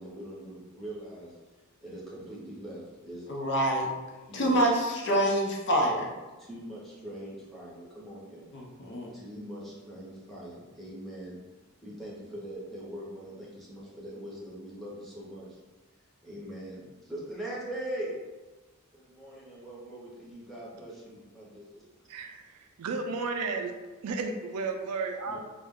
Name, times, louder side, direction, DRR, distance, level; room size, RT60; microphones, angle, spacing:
voice 1, 0.0-1.3 1.8-3.2 4.3-4.7 6.4-8.5 9.1-11.4 11.8-15.6 16.2-18.2 18.9-21.8 25.3-25.4, right 1 dB, ahead, -7 dB, 0.7 m, -41 dB
voice 2, 3.3-3.9 4.3-6.1 8.5-9.1, right 1 dB, 50° left, -1 dB, 0.5 m, -26 dB
voice 3, 22.1-23.7 24.0-25.4, right 4 dB, 85° right, 4 dB, 0.4 m, -33 dB
2.4 x 2.1 x 3.5 m, 1.2 s
head